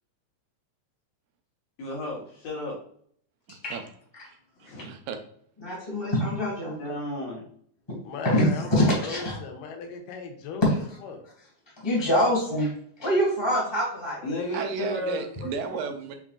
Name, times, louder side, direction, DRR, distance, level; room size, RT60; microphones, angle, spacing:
voice 1, 1.8-2.8 4.6-4.9 6.8-7.4 14.2-15.8, left 1 dB, 65° left, -4 dB, 1.8 m, -33 dB
voice 2, 3.5-3.8 4.2-5.2 14.5-16.2, right 6 dB, 85° right, 6 dB, 2.3 m, -34 dB
voice 3, 5.6-6.8 7.9-8.0 8.2-9.4 10.6-10.8 11.8-12.7 13.0-14.4, equal, 15° left, -4 dB, 1.1 m, -24 dB
voice 4, 8.1-8.7 8.9-10.7 11.0-11.2, left 5 dB, 85° left, 4 dB, 2.3 m, -37 dB
5.9 x 3.6 x 2.4 m, 0.63 s
omnidirectional pair, 3.8 m